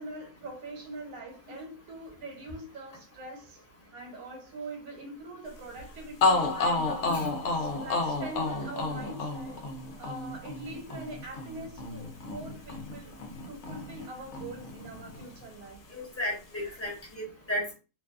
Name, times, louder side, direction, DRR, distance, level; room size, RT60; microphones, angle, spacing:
voice 1, 0.0-3.6 3.9-7.1 7.5-9.6 10.0-13.2 13.5-15.8 16.6-16.8, right 2 dB, 70° right, 1.3 m, -43 dB
sound 1, 5.8-5.9 6.2-14.1 14.3-15.5, left 3 dB, 65° left, 0.7 m, -31 dB
voice 2, 15.9-17.7, left 1 dB, 10° left, 0.8 m, -34 dB
2.6 x 2.3 x 2.3 m
omnidirectional pair, 1.7 m